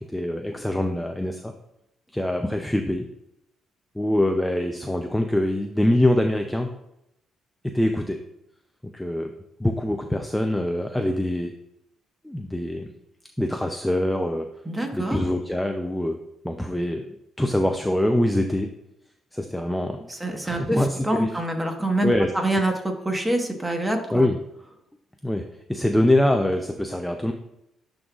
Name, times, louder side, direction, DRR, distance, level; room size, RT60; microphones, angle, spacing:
voice 1, 0.0-1.5 2.1-3.1 4.0-6.7 7.6-8.2 8.9-9.3 9.6-11.5 12.2-12.9 13.4-14.5 14.9-16.2 16.4-17.0 17.4-18.7 19.3-20.1 20.4-21.3 22.0-22.3 24.1-24.4 25.2-27.3, left 1 dB, 5° left, 4 dB, 0.4 m, -24 dB
voice 2, 14.6-15.2 20.1-24.3, right 1 dB, 15° right, 3 dB, 1.3 m, -26 dB
11.5 x 3.8 x 2.4 m, 0.83 s
cardioid pair, 90°, 0 cm